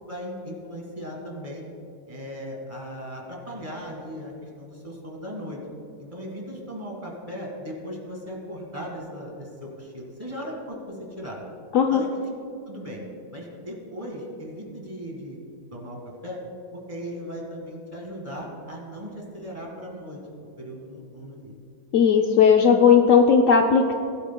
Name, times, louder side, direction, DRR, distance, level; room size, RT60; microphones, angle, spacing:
voice 1, 0.0-1.6 2.1-5.6 6.1-11.4 11.9-12.3 12.7-13.0 13.3-15.4 15.7-16.4 16.9-20.2 20.6-21.5, equal, 20° right, -2 dB, 1.9 m, -37 dB
voice 2, 21.9-23.9, left 6 dB, 65° left, 3 dB, 0.9 m, -16 dB
19.5 x 8.6 x 2.2 m, 2.6 s
omnidirectional pair, 1.6 m